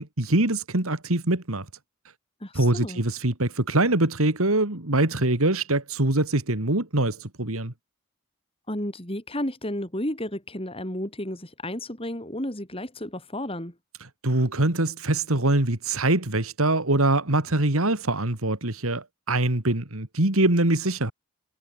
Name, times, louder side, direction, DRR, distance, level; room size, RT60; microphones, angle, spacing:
voice 1, 0.0-1.7 2.5-7.7 14.2-21.1, right 2 dB, 75° right, 2.7 m, -23 dB
voice 2, 2.4-3.0 8.7-13.7, left 1 dB, 25° left, 4.8 m, -32 dB
head